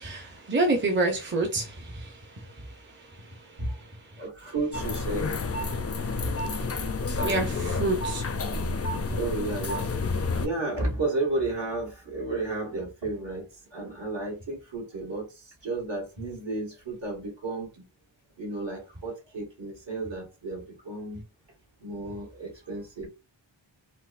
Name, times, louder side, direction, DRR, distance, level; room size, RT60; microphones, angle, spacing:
voice 1, 0.0-3.6 4.1-4.2 6.0-6.2 7.2-8.4, right 2 dB, 25° right, 0.7 m, -29 dB
voice 2, 4.2-5.3 6.2-6.4 9.1-10.0 10.3-13.5 13.7-17.9 18.4-21.2 21.8-23.1, right 2 dB, 60° right, 1.7 m, -32 dB
sound 1, 4.7-10.5, left 3 dB, 35° left, 0.4 m, -30 dB
4.2 x 2.0 x 2.4 m
wide cardioid pair, 70°, 48 cm